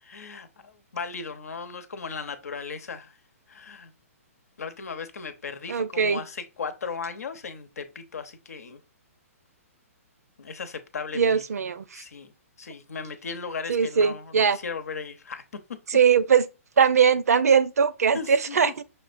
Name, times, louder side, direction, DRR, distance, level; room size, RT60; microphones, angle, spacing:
voice 1, 0.0-3.2 3.5-3.9 4.6-8.8 10.4-11.4 11.9-12.3 12.6-15.8 18.1-18.7, left 5 dB, 80° left, 0.9 m, -37 dB
voice 2, 5.7-6.2 11.1-12.0 13.7-14.6 15.9-16.5 16.8-18.8, right 6 dB, 85° right, 0.6 m, -21 dB
5.9 x 3.4 x 2.5 m
hypercardioid pair, 145°, 8 cm